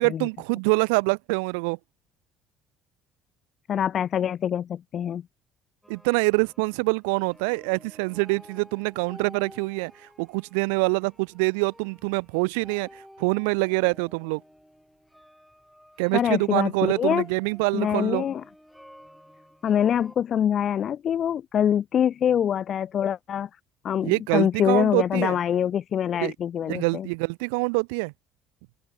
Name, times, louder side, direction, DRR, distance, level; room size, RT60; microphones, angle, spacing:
voice 1, 0.0-1.8 5.9-9.9 10.2-14.4 16.0-18.2 24.0-25.4 26.2-26.3 26.7-28.1, right 33 dB, 65° right, 0.3 m, -25 dB
voice 2, 3.7-5.2 16.1-17.2 17.7-18.4 19.6-23.5 23.8-27.1, left 9 dB, 45° left, 1.3 m, -24 dB
sound 1, 5.8-20.2, equal, ahead, 7.7 m, -51 dB
open air
figure-of-eight pair, 55°, 0 cm